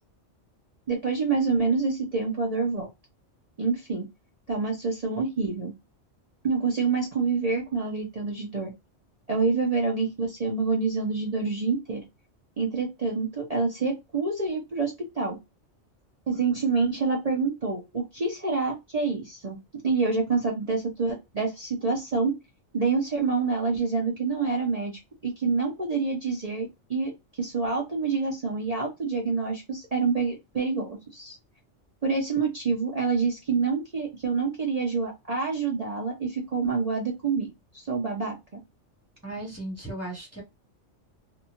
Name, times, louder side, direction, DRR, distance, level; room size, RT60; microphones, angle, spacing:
voice 1, 0.9-2.9 3.6-4.0 4.5-5.7 6.4-8.7 9.3-12.0 12.6-15.4 16.3-19.6 19.8-22.4 22.7-27.1 27.4-31.4 32.0-37.5 37.7-38.6, right 4 dB, 40° right, -1 dB, 0.6 m, -27 dB
voice 2, 39.2-40.4, right 1 dB, 15° left, -1 dB, 0.7 m, -36 dB
2.7 x 2.2 x 2.8 m, 0.22 s
omnidirectional pair, 1.2 m